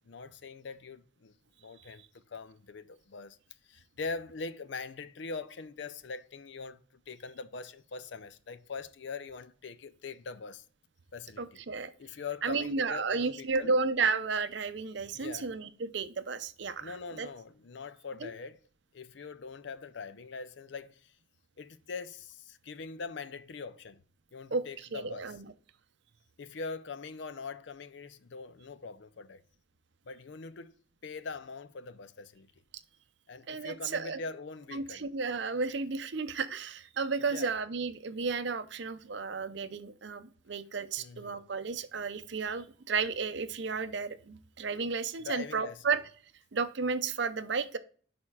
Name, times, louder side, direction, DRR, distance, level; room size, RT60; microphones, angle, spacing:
voice 1, 0.1-1.3 1.6-2.0 2.3-3.4 3.7-10.6 11.1-11.6 12.0-13.7 15.1-15.5 16.8-18.6 18.9-21.1 21.6-24.0 24.3-25.4 26.4-29.4 30.1-30.7 31.0-32.5 33.3-35.1 37.3-37.5 41.0-41.4 45.2-45.8, left 4 dB, 60° left, 0.5 m, -42 dB
voice 2, 11.4-11.9 12.4-17.3 18.2-18.3 24.5-25.4 33.5-34.2 34.7-46.0 46.5-47.8, right 4 dB, 60° right, 0.6 m, -33 dB
11.0 x 4.3 x 2.3 m
head